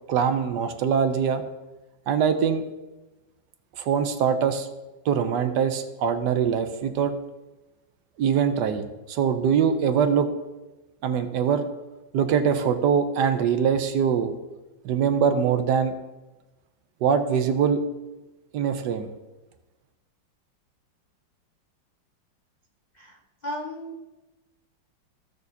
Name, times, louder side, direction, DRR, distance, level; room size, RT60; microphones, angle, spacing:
voice 1, 0.1-1.4 2.1-2.6 3.8-4.7 5.1-7.1 8.2-8.8 9.1-10.3 11.0-11.6 12.1-14.3 14.8-15.9 17.0-17.8 18.5-19.1, right 7 dB, 70° right, 8 dB, 1.2 m, -23 dB
voice 2, 22.9-24.1, equal, 65° left, 0 dB, 0.4 m, -36 dB
15.0 x 6.6 x 2.8 m, 1.1 s
omnidirectional pair, 2.0 m